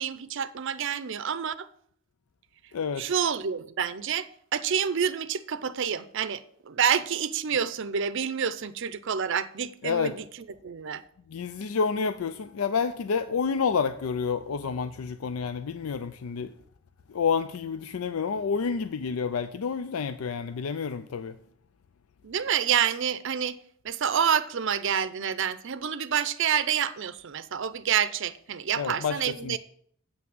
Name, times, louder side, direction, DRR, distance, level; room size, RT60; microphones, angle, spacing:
voice 1, 0.0-1.7 3.0-10.2 10.6-11.0 22.2-23.6 23.8-29.6, right 8 dB, 60° right, 0.5 m, -28 dB
voice 2, 2.7-3.1 9.8-10.2 11.3-16.5 17.1-21.4 28.8-29.6, left 5 dB, 80° left, 0.4 m, -29 dB
8.1 x 5.9 x 7.7 m
head